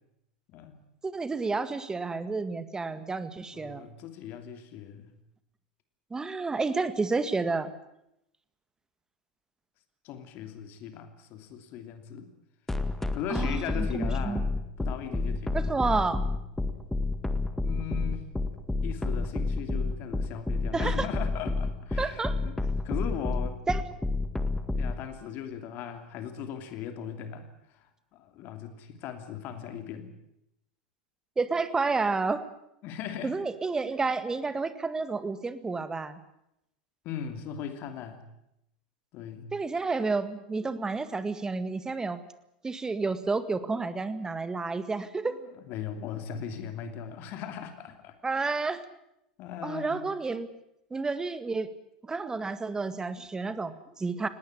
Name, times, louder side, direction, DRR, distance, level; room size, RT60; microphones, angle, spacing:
voice 1, 1.0-3.9 6.1-7.7 13.3-14.4 15.5-16.2 20.7-21.1 22.0-22.4 23.7-23.8 31.4-32.4 33.2-36.2 39.5-42.2 42.6-45.4 48.2-48.8 49.6-50.5 50.9-51.7 52.0-54.3, right 4 dB, 15° right, 13 dB, 1.9 m, -30 dB
voice 2, 3.5-5.1 10.0-12.3 13.1-14.5 14.8-15.7 17.6-18.3 18.8-22.6 22.8-23.6 24.7-30.1 32.8-33.3 37.0-38.2 39.1-39.5 45.3-45.4 45.7-48.2 49.4-50.1, left 8 dB, 45° left, 8 dB, 3.0 m, -38 dB
sound 1, 12.7-24.9, left 3 dB, 10° left, 1.9 m, -29 dB
20.0 x 18.0 x 9.9 m, 0.80 s
figure-of-eight pair, 90°, 5 cm